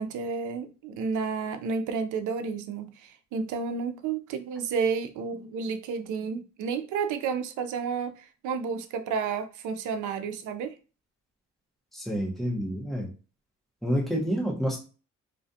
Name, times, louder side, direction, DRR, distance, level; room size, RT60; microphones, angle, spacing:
voice 1, 0.0-10.7, right 5 dB, 80° right, 0.5 m, -31 dB
voice 2, 11.9-13.1 13.8-14.8, equal, ahead, 0.9 m, -28 dB
2.4 x 2.3 x 2.6 m
cardioid pair, 90°, 30 cm